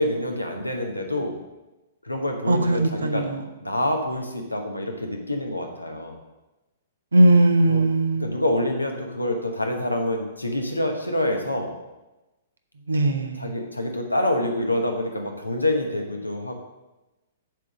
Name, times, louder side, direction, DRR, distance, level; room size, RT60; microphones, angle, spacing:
voice 1, 0.0-1.4 2.0-3.3 3.6-6.2 7.6-7.9 8.1-11.7 13.4-16.5, left 1 dB, 85° left, 3 dB, 1.1 m, -26 dB
voice 2, 2.5-3.4 7.1-8.4 12.9-13.6, right 1 dB, 70° right, 6 dB, 0.8 m, -19 dB
7.3 x 3.8 x 6.1 m, 1.0 s
figure-of-eight pair, 110°, 0 cm